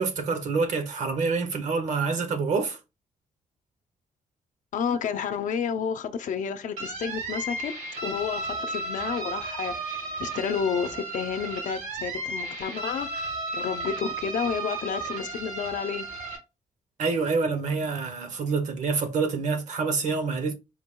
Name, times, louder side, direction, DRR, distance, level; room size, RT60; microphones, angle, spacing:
voice 1, 0.0-2.8 17.0-20.5, right 4 dB, 65° right, 0.9 m, -27 dB
voice 2, 4.7-7.7 8.0-16.1, left 7 dB, 70° left, 0.6 m, -31 dB
sound 1, 6.8-16.4, right 2 dB, 80° right, 2.0 m, -34 dB
4.6 x 2.3 x 3.7 m
cardioid pair, 140°, 13 cm